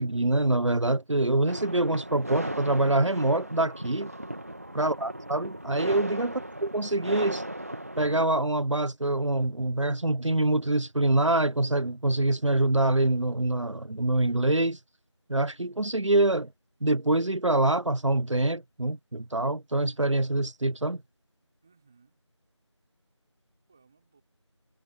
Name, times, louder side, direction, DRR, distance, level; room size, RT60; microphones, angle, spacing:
voice 1, 0.0-4.1 4.7-6.3 6.6-7.4 8.0-14.8 15.3-16.5 16.8-21.0, right 2 dB, 80° right, 0.9 m, -25 dB
sound 1, 1.5-8.3, right 1 dB, 30° right, 2.2 m, -37 dB
voice 2, 4.8-5.2 6.3-6.6 21.6-22.2 23.7-24.2, right 5 dB, 5° right, 5.1 m, -62 dB
figure-of-eight pair, 175°, 16 cm